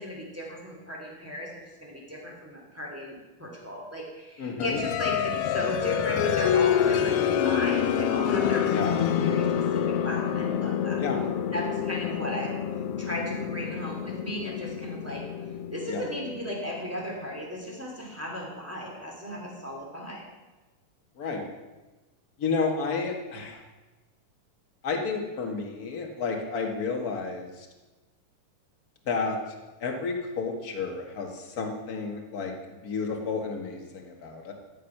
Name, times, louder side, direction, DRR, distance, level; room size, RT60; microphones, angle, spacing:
voice 1, 0.0-1.5 1.8-11.0 11.5-12.6 13.0-15.3 15.7-20.3, equal, 5° right, -2 dB, 2.7 m, -36 dB
voice 2, 4.4-4.8 8.7-9.0 11.0-11.2 15.9-16.1 21.2-21.4 22.4-23.6 24.8-27.7 29.0-29.4 29.8-32.5 32.8-34.5, left 4 dB, 35° left, 2 dB, 1.8 m, -31 dB
sound 1, 4.6-17.1, left 8 dB, 80° left, 1.3 m, -27 dB
14.5 x 10.0 x 6.0 m, 1.2 s
omnidirectional pair, 3.6 m